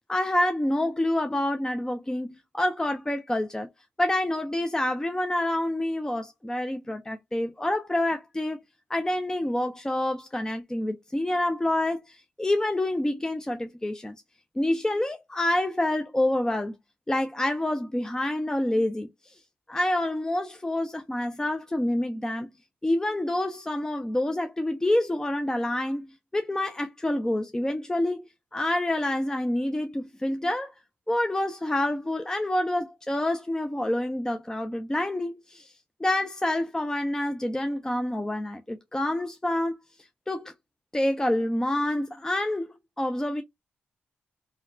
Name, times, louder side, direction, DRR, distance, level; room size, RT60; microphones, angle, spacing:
voice 1, 0.1-3.7 4.0-8.6 8.9-14.2 14.6-16.7 17.1-19.4 19.7-22.5 22.8-26.1 26.3-28.2 28.5-30.7 31.1-35.7 36.0-39.8 40.3-40.5 40.9-42.7 43.0-43.4, left 1 dB, 15° left, 0.4 m, -27 dB
2.8 x 2.1 x 2.5 m
cardioid pair, 55°, 4 cm